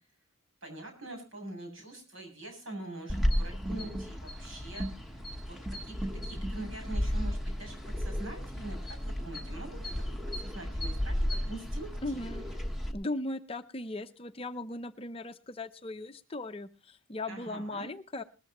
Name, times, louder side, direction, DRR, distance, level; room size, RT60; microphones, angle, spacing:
voice 1, 0.6-5.6 5.8-6.0 6.2-12.6 17.3-17.9, right 2 dB, 65° right, 3 dB, 7.3 m, -44 dB
sound 1, 3.1-12.9, equal, ahead, 1.2 m, -34 dB
voice 2, 12.0-12.4 12.9-18.2, left 2 dB, 25° left, 8 dB, 0.6 m, -38 dB
20.0 x 13.5 x 3.0 m, 0.32 s
head